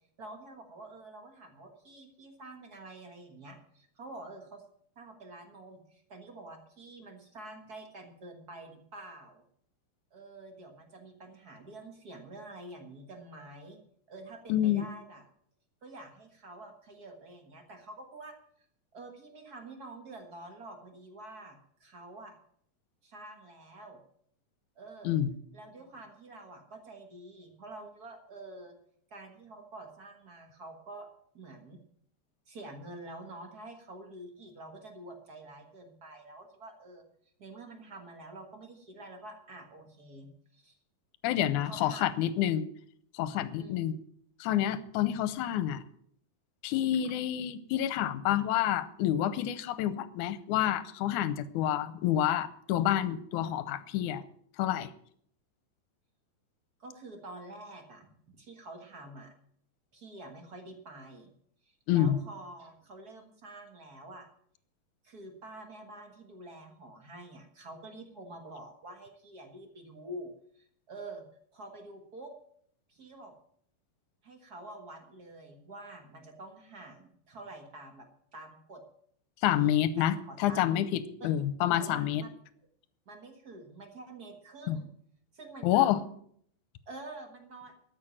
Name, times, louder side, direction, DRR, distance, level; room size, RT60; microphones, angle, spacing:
voice 1, 0.2-4.6 4.9-9.4 10.1-13.8 14.1-15.2 15.8-18.7 18.9-22.4 23.0-24.0 24.7-25.1 25.5-28.8 29.1-31.1 31.3-31.8 32.5-37.0 37.4-40.8 41.6-42.1 43.6-43.8 56.8-59.3 59.9-61.3 61.6-64.3 65.0-72.3 72.9-73.3 74.2-78.1 78.3-78.8 79.6-80.7 81.2-81.3 81.7-82.3 83.1-84.9 85.3-85.9 86.9-87.7, right 2 dB, 45° right, 4 dB, 1.2 m, -47 dB
voice 2, 14.5-14.9 25.0-25.3 41.2-42.7 43.1-44.0 44.4-45.8 46.6-54.2 54.6-54.9 61.9-62.2 79.4-82.2 84.7-84.8 85.6-86.0, left 11 dB, 75° left, 14 dB, 2.0 m, -28 dB
13.5 x 6.6 x 8.8 m, 0.64 s
omnidirectional pair, 4.0 m